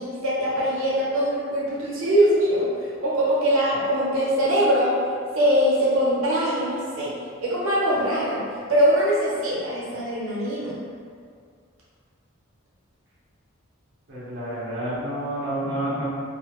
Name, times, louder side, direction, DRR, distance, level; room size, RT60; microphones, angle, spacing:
voice 1, 0.0-5.0 5.3-7.2 7.4-8.4 8.7-10.8, equal, 85° right, -7 dB, 0.8 m, -22 dB
voice 2, 14.1-16.0, right 1 dB, 55° right, -9 dB, 0.7 m, -29 dB
2.4 x 2.4 x 3.0 m, 2.2 s
head